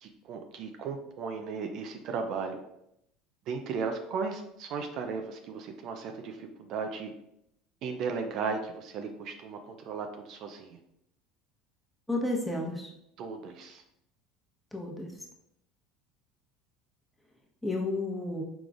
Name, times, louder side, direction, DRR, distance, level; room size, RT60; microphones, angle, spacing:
voice 1, 0.0-2.7 3.5-7.1 7.8-10.8 13.2-13.8, right 5 dB, 60° right, 5 dB, 0.5 m, -36 dB
voice 2, 12.1-12.9 14.7-15.1 17.6-18.4, left 2 dB, 5° left, -1 dB, 1.1 m, -31 dB
4.9 x 3.6 x 2.5 m, 0.78 s
hypercardioid pair, 80°, 0 cm